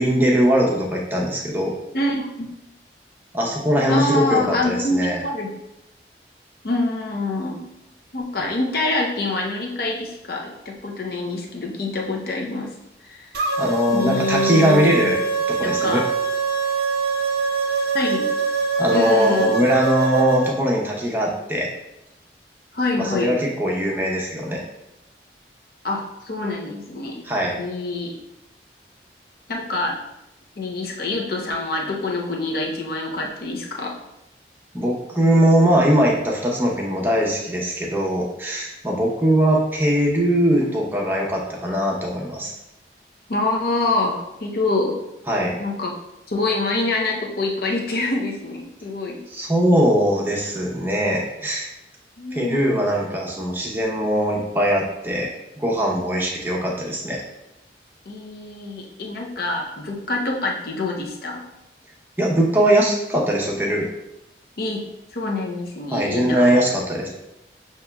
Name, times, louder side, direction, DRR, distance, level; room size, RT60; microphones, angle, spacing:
voice 1, 0.0-1.7 3.3-5.2 13.6-15.2 15.5-16.0 18.8-21.7 23.0-24.6 27.2-27.6 34.7-42.5 45.3-45.6 49.3-51.7 52.3-55.3 55.6-57.2 62.2-63.9 65.9-67.1, equal, 10° right, -2 dB, 0.7 m, -20 dB
voice 2, 1.9-2.5 3.9-5.6 6.6-7.7 8.1-12.7 13.0-13.3 13.9-15.1 15.6-16.0 17.9-18.3 18.9-19.6 22.7-23.3 25.8-27.2 27.6-28.1 29.5-30.0 30.6-34.0 43.3-45.0 45.6-45.9 46.3-49.2 52.2-52.6 58.1-61.5 64.6-66.5, left 2 dB, 55° left, 0 dB, 0.6 m, -26 dB
sound 1, 13.3-20.5, right 4 dB, 60° right, 0.6 m, -23 dB
6.9 x 2.9 x 2.3 m, 0.88 s
head